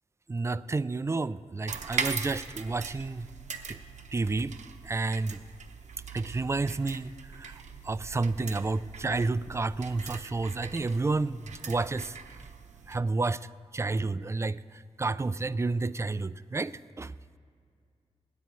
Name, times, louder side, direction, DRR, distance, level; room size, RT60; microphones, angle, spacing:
voice 1, 0.3-3.3 3.7-3.8 4.1-4.6 4.8-5.4 6.1-7.5 7.8-12.2 12.9-13.4 13.7-14.6 15.0-17.1, right 3 dB, 25° right, 16 dB, 0.3 m, -30 dB
sound 1, 1.7-13.0, right 5 dB, 85° right, 0.8 m, -40 dB
25.0 x 9.3 x 3.1 m, 2.3 s
wide cardioid pair, 85°, 12 cm